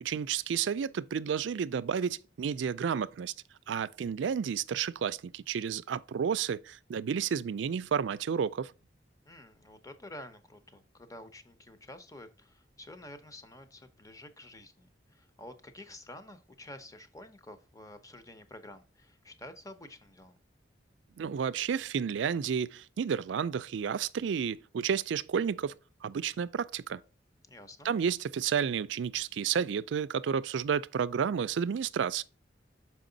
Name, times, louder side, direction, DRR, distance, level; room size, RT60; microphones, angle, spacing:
voice 1, 0.0-3.3 3.7-8.7 21.2-25.7 26.0-27.0 27.8-32.2, right 7 dB, 85° right, 0.4 m, -31 dB
voice 2, 9.3-20.4 27.5-27.9, left 1 dB, 20° left, 0.7 m, -49 dB
6.2 x 4.7 x 3.8 m
head